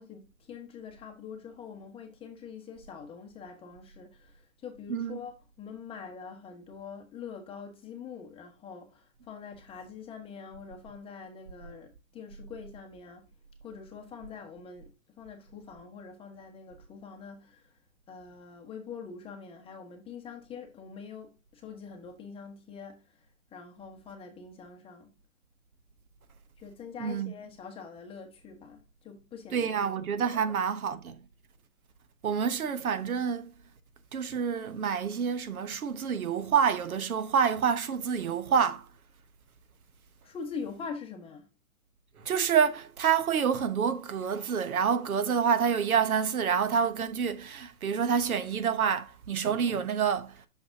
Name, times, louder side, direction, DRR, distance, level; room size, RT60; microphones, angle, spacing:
voice 1, 0.0-13.3 13.6-17.7 18.1-23.1 23.5-25.1 26.6-30.5 40.2-41.5, left 6 dB, 15° left, 1.1 m, -44 dB
voice 2, 4.9-5.3 27.0-27.3 29.5-31.2 32.2-33.5 34.1-38.9 42.2-50.4, right 7 dB, 85° right, 1.1 m, -28 dB
6.5 x 5.8 x 2.6 m
hypercardioid pair, 140°, 42 cm